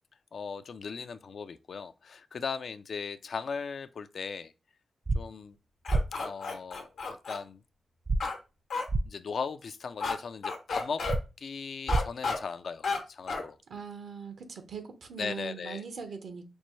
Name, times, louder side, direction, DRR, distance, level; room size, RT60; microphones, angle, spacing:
voice 1, 0.3-4.5 5.1-5.6 6.1-7.6 9.0-11.1 11.4-13.6 15.2-15.8, left 5 dB, 70° left, 0.3 m, -38 dB
sound 1, 5.1-5.2 5.9-6.0 8.1-8.2 8.9-9.0 11.1-11.2 11.9-12.0, right 2 dB, 35° right, 0.3 m, -26 dB
sound 2, 5.9-7.4 8.2-8.4 8.7-8.8 10.0-10.1 10.4-11.2 11.9-12.4 12.8-13.0 13.3-13.4, left 4 dB, 85° left, 0.9 m, -32 dB
voice 2, 13.7-16.4, right 6 dB, 80° right, 0.8 m, -41 dB
5.3 x 2.2 x 3.1 m
cardioid pair, 50°, 0 cm